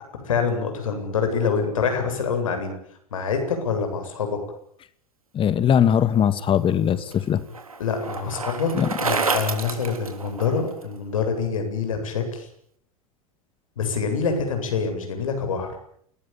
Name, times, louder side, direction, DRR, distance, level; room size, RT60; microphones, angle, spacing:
voice 1, 0.1-2.7 3.1-4.4 7.8-12.5 13.8-15.7, left 5 dB, 70° left, 5 dB, 8.0 m, -26 dB
voice 2, 5.3-7.4 8.7-8.9, left 9 dB, 30° left, 14 dB, 2.3 m, -20 dB
Bicycle, 6.4-10.8, right 4 dB, 80° right, 4.0 m, -29 dB
28.5 x 20.0 x 9.2 m, 0.68 s
figure-of-eight pair, 80°, 18 cm